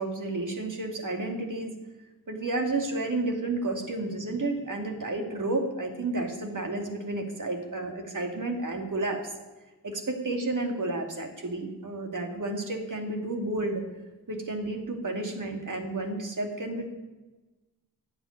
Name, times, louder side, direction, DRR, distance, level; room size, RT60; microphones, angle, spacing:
voice 1, 0.0-1.7 2.3-9.3 9.8-13.8 14.3-16.9, right 2 dB, 50° right, 3 dB, 2.7 m, -31 dB
12.0 x 7.9 x 9.7 m, 1.2 s
cardioid pair, 55°, 38 cm